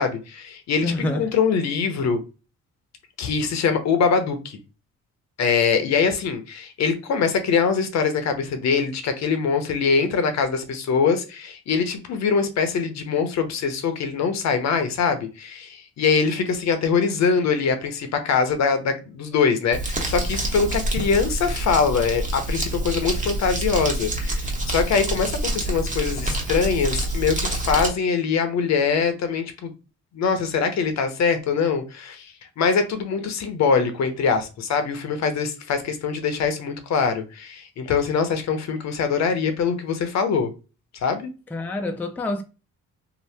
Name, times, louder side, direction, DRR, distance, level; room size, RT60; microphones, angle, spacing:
voice 1, 0.0-2.2 3.2-4.6 5.4-29.7 30.1-40.5 40.9-41.3, left 5 dB, 65° left, 0.7 m, -23 dB
voice 2, 0.8-1.3 41.5-42.4, left 2 dB, 5° left, 0.3 m, -27 dB
Crumpling crinkling, 19.7-27.9, right 1 dB, 25° right, 0.9 m, -27 dB
2.8 x 2.1 x 3.3 m
cardioid pair, 90°, 30 cm